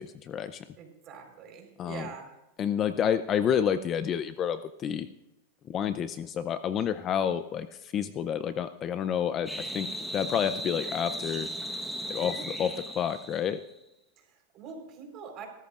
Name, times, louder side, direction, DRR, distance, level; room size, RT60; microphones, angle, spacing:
voice 1, 0.0-0.6 1.8-2.1 2.6-5.1 5.7-11.5 12.1-13.6, left 8 dB, 25° left, 12 dB, 0.5 m, -29 dB
voice 2, 0.8-2.3 12.2-12.5 14.2-15.5, right 6 dB, 30° right, 3 dB, 4.2 m, -44 dB
sound 1, 9.5-13.7, equal, ahead, 1.2 m, -37 dB
25.5 x 14.0 x 2.5 m, 0.92 s
supercardioid pair, 155°, 0 cm